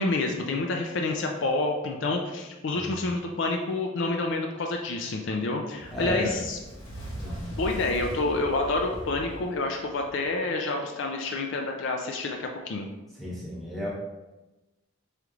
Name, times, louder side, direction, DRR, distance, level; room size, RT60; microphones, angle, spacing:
voice 1, 0.0-6.6 7.6-12.9, left 2 dB, 65° left, 2 dB, 0.4 m, -28 dB
voice 2, 2.7-3.1 5.9-6.4 7.2-7.4 13.2-13.9, equal, ahead, -7 dB, 0.9 m, -34 dB
Fire, 5.7-10.3, equal, 90° left, 0.9 m, -39 dB
4.9 x 3.0 x 2.4 m, 1.1 s
head